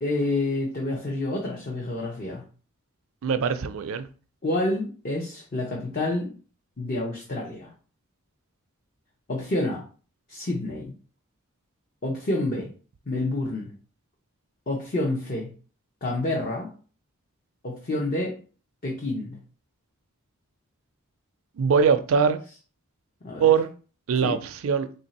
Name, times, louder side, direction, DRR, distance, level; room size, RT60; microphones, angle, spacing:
voice 1, 0.0-2.4 4.4-6.3 6.8-7.7 9.3-9.9 10.3-10.9 12.0-12.7 13.1-13.7 14.7-15.5 16.0-16.7 17.6-18.4 18.8-19.4 23.2-23.5 24.2-24.4, left 2 dB, 40° left, 0.7 m, -28 dB
voice 2, 3.2-4.1 21.6-22.4 23.4-23.7 24.1-24.9, right 6 dB, 65° right, 0.4 m, -22 dB
3.2 x 2.6 x 4.1 m
head